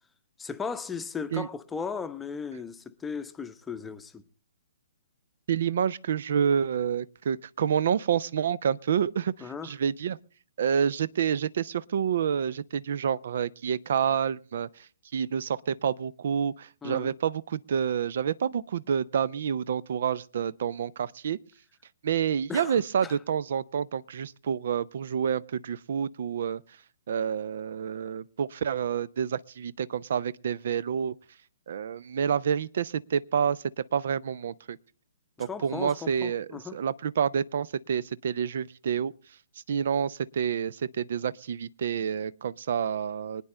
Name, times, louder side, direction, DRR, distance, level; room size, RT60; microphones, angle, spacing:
voice 1, 0.4-4.2 9.4-9.7 16.8-17.1 22.5-23.2 35.4-36.8, left 5 dB, 10° left, 0.8 m, -36 dB
voice 2, 5.5-10.2 10.6-14.7 15.1-21.4 22.0-26.6 27.1-31.1 31.7-34.8 35.4-39.1 39.7-43.4, right 8 dB, 55° right, 0.5 m, -28 dB
25.0 x 9.7 x 3.3 m
figure-of-eight pair, 125°, 0 cm